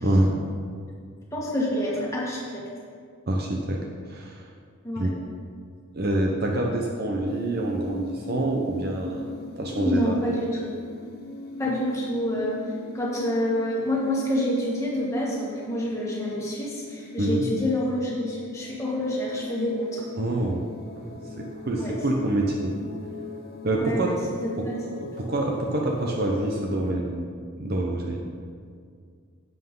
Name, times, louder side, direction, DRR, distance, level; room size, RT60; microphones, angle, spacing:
voice 1, 0.0-0.3 3.3-4.5 5.0-5.2 5.9-10.1 17.2-17.5 20.2-20.6 21.0-22.8 23.6-24.2 24.6-24.7 25.0-27.3 27.5-28.2, right 1 dB, 45° right, 0 dB, 0.8 m, -26 dB
voice 2, 1.3-2.7 4.8-5.1 9.8-10.7 11.6-20.1 21.7-21.9 23.7-24.8, left 1 dB, 15° left, -5 dB, 1.7 m, -28 dB
sound 1, 7.3-26.9, left 3 dB, 45° left, 0.9 m, -40 dB
11.0 x 7.9 x 3.8 m, 2.1 s
head